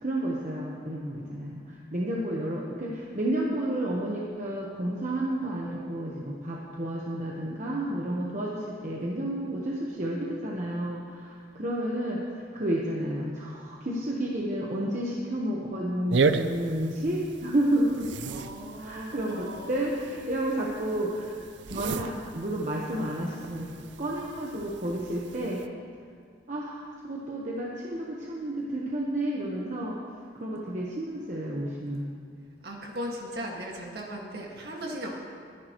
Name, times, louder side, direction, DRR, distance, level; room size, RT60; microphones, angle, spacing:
voice 1, 0.0-12.2 12.5-18.1 18.8-21.3 21.7-25.6 26.5-30.0 30.4-32.1, right 1 dB, 40° right, -4 dB, 1.2 m, -31 dB
sound 1, 16.1-25.7, right 4 dB, 75° right, 0.5 m, -34 dB
voice 2, 18.3-19.7 32.6-35.1, equal, 60° right, -1 dB, 2.0 m, -37 dB
22.0 x 11.0 x 3.1 m, 2.2 s
head